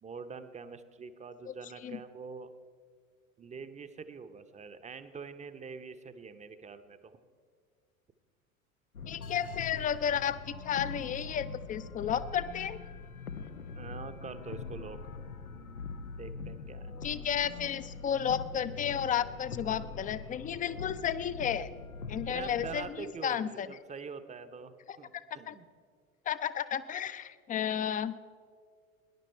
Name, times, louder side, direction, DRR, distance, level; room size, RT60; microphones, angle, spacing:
voice 1, 0.0-2.5 3.4-7.1 13.7-15.3 16.2-17.1 22.3-25.7, right 5 dB, 15° right, 11 dB, 0.8 m, -45 dB
sound 1, 8.9-22.9, left 4 dB, 90° left, 0.7 m, -43 dB
voice 2, 9.1-12.8 17.0-21.7 22.1-22.9 23.2-23.8 24.9-25.5 26.3-28.2, left 9 dB, 20° left, 14 dB, 0.5 m, -33 dB
20.0 x 10.5 x 4.5 m, 2.1 s
figure-of-eight pair, 80°, 42 cm